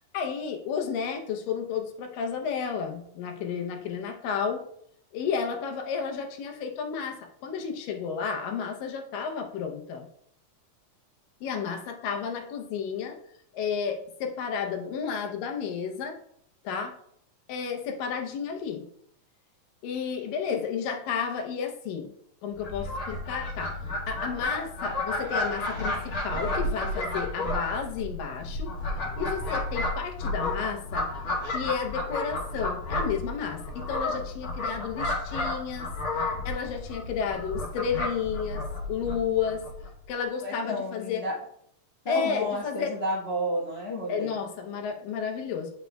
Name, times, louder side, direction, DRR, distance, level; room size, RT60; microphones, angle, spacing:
voice 1, 0.1-4.6 5.1-10.1 11.4-13.2 13.5-16.2 16.7-17.0 17.5-18.9 19.8-22.1 22.4-23.8 24.1-28.7 29.2-31.1 31.5-35.9 36.5-39.7 40.1-41.3 42.1-42.9 44.1-45.7, left 6 dB, 90° left, 3 dB, 2.5 m, -32 dB
Fowl, 22.6-39.9, left 2 dB, 50° left, 1.7 m, -32 dB
voice 2, 40.4-41.3 42.0-44.3, equal, 75° left, -8 dB, 0.5 m, -31 dB
9.2 x 5.7 x 2.3 m, 0.69 s
omnidirectional pair, 3.8 m